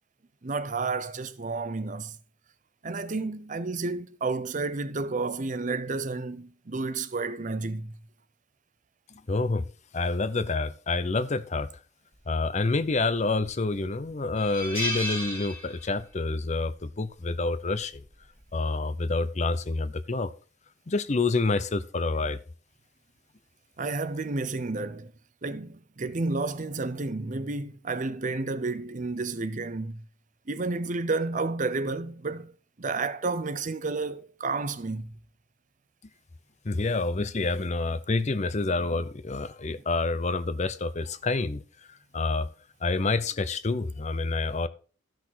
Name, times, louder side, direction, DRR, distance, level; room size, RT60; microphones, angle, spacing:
voice 1, 0.4-2.2 2.8-8.0 23.8-25.1 25.4-30.0 30.5-35.2, right 3 dB, 40° right, 0.7 m, -31 dB
voice 2, 9.3-9.7 9.9-11.7 12.3-18.0 18.5-20.3 20.9-22.4 36.6-41.6 42.1-42.5 42.8-44.7, left 3 dB, 35° left, 0.6 m, -28 dB
sound 1, 13.2-13.5 13.9-14.0 14.4-16.2 16.5-16.7 17.9-18.2, equal, 10° left, 2.2 m, -34 dB
13.0 x 6.1 x 4.4 m
head